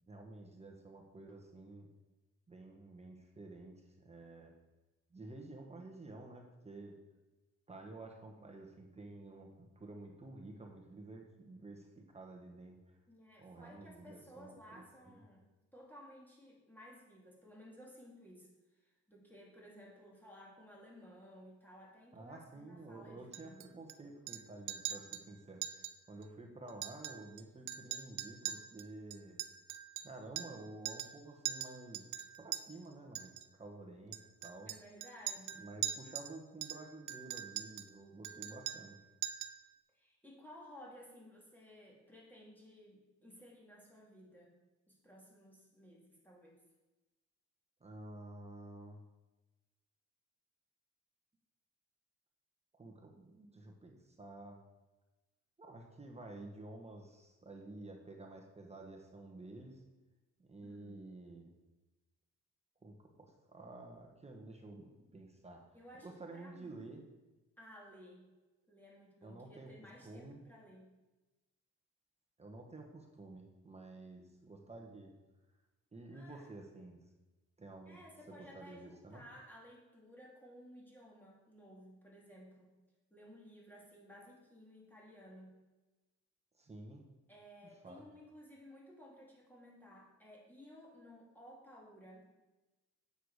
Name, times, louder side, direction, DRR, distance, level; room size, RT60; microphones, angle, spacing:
voice 1, 0.1-1.9 2.5-4.5 5.1-7.0 7.7-12.9 13.4-15.2 22.1-29.4 30.0-32.1 32.4-34.7 35.5-39.0 47.8-49.0 52.7-54.6 55.6-59.8 60.4-61.5 62.8-65.6 66.0-67.0 69.2-69.7 70.0-70.4 72.4-75.1 75.9-77.0 77.6-78.0 78.3-79.2 86.6-87.1 87.8-88.0, right 2 dB, 20° right, 1 dB, 1.5 m, -51 dB
voice 2, 13.1-15.4 15.7-23.6 34.7-35.6 39.9-44.5 44.9-46.6 60.6-61.3 65.7-67.0 67.6-68.3 68.7-70.9 76.1-76.5 77.9-82.7 83.1-85.5 87.3-92.3, equal, 5° left, -4 dB, 2.9 m, -56 dB
Chink clink, 23.3-23.9 24.3-24.4 24.7-25.2 25.6-25.9 26.2-26.3 26.7-27.4 27.7-30.6 30.9-31.2 31.5-32.6 33.2-33.4 34.1-36.3 36.6-37.9 38.2-39.0 39.2-39.6, right 12 dB, 80° right, 0.6 m, -42 dB
8.9 x 6.9 x 5.0 m, 1.1 s
cardioid pair, 90°, 30 cm